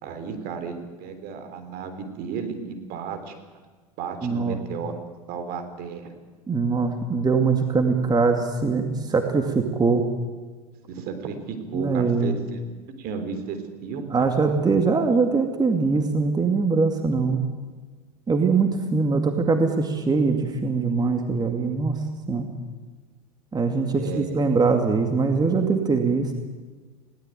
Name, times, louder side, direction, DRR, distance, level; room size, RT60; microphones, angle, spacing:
voice 1, 0.0-3.4 4.0-4.9 5.3-6.1 10.9-12.7 13.0-14.3 23.9-24.4, right 6 dB, 50° right, 8 dB, 3.6 m, -33 dB
voice 2, 4.2-4.6 6.5-10.0 11.7-12.4 14.1-17.4 18.3-22.0 22.3-22.5 23.5-26.3, right 4 dB, 20° right, 5 dB, 2.3 m, -22 dB
20.0 x 17.5 x 9.2 m, 1.4 s
hypercardioid pair, 85°, 20 cm